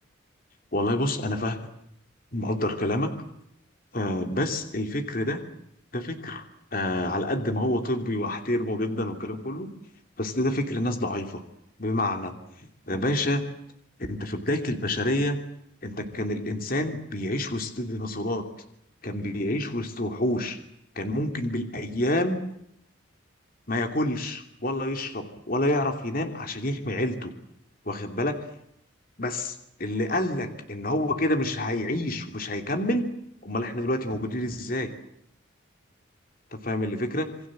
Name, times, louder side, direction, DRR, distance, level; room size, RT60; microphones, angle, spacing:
voice 1, 0.7-1.6 2.3-3.1 3.9-5.4 5.9-6.4 6.7-9.7 10.2-11.4 11.8-12.3 12.9-13.4 14.1-15.4 15.8-18.5 19.0-20.6 21.0-22.4 23.7-27.3 27.9-28.4 29.2-33.1 33.4-34.9 36.6-37.3, left 1 dB, 45° left, 6 dB, 2.9 m, -28 dB
27.5 x 23.5 x 7.7 m, 0.75 s
head